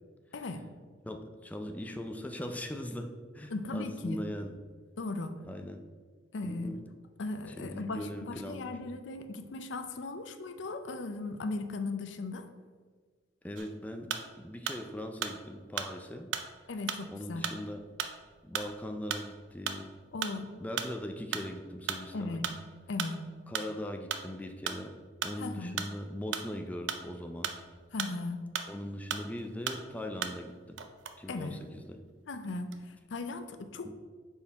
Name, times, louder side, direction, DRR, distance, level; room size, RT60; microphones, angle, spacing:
voice 1, 1.0-4.5 5.4-5.8 6.4-6.8 7.5-8.8 13.4-16.3 17.1-17.9 18.4-19.9 20.6-22.5 23.5-24.9 25.2-27.6 28.7-30.8 31.2-32.0 33.8-33.9, left 1 dB, 10° left, 5 dB, 0.4 m, -40 dB
voice 2, 3.5-4.2 5.0-5.3 6.3-6.7 7.2-12.5 16.7-17.5 20.1-20.5 22.1-22.5 22.9-23.2 25.4-25.7 27.9-28.5 31.3-31.6 32.3-33.9, left 3 dB, 70° left, 8 dB, 0.5 m, -37 dB
sound 1, 13.6-14.9 15.2-28.8 29.1-30.5 30.8-32.0 32.4-33.0, right 7 dB, 75° right, 0.5 m, -37 dB
5.3 x 4.5 x 4.5 m, 1.5 s
head